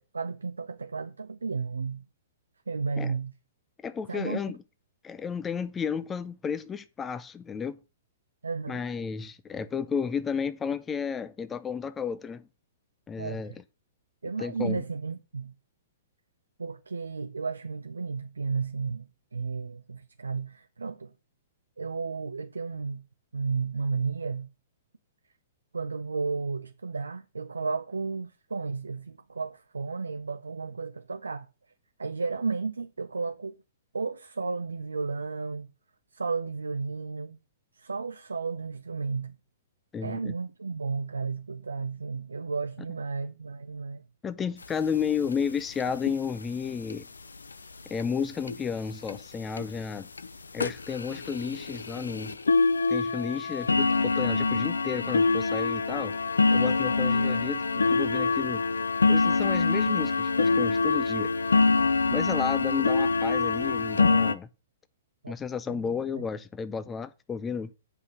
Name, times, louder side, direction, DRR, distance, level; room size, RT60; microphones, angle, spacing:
voice 1, 0.1-2.1 2.7-3.3 4.1-4.4 8.4-8.8 13.2-13.6 14.2-15.5 16.6-21.1 21.8-23.0 23.3-24.5 25.7-31.5 32.0-33.6 33.9-35.7 36.1-37.4 37.7-39.4 40.0-44.1 65.2-65.4 65.7-66.3, right 4 dB, 75° right, 0.5 m, -33 dB
voice 2, 3.8-4.6 5.0-7.8 8.7-12.5 13.1-13.5 14.4-14.8 39.9-40.3 44.2-47.1 47.9-50.1 50.5-52.4 52.9-56.2 56.5-58.6 59.1-61.3 62.1-64.5 65.3-67.7, left 6 dB, 15° left, 0.5 m, -32 dB
sound 1, 44.6-44.7 45.0-45.1 45.3-45.5 45.8-46.1 46.9-47.0 47.5-47.6 48.0-48.1 48.5-48.6 49.1-49.2 49.6-49.8 50.2-50.3 50.6-64.3, left 3 dB, 75° left, 0.5 m, -25 dB
8.3 x 5.5 x 6.3 m
figure-of-eight pair, 115°, 0 cm